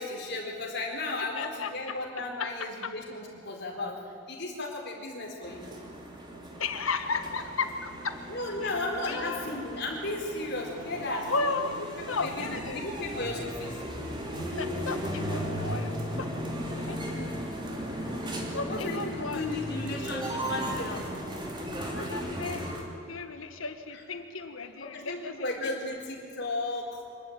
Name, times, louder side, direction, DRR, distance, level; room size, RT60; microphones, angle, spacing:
voice 1, 0.0-5.6 8.3-11.3 12.1-13.8 18.6-21.1 23.9-24.0 24.8-27.0, left 2 dB, 55° left, 0 dB, 4.3 m, -35 dB
voice 2, 1.4-2.0 6.6-8.2 8.6-8.8 9.1-9.4 11.3-11.8 12.0-12.9 14.4-16.3 16.9-17.3 18.5-19.5 21.9-22.7 23.1-25.3 25.6-25.8, left 4 dB, 80° left, 8 dB, 1.6 m, -34 dB
sound 1, 5.4-22.8, equal, 20° right, 2.9 m, -36 dB
25.5 x 12.0 x 9.3 m, 2.8 s
head